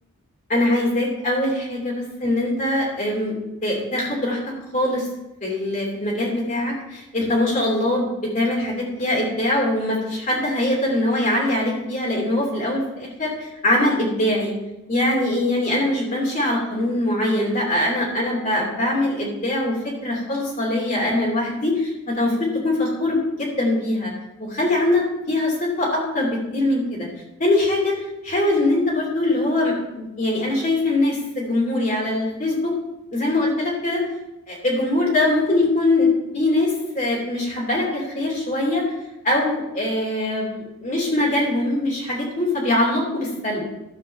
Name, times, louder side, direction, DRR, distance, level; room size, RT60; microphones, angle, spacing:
voice 1, 0.5-4.4 4.7-5.1 5.4-14.5 14.9-24.1 24.4-27.1 27.4-28.0 28.2-32.7 33.1-34.0 34.5-36.1 36.3-38.8 39.2-43.6, left 1 dB, 40° left, -3 dB, 2.9 m, -22 dB
12.0 x 4.6 x 6.8 m, 0.94 s
head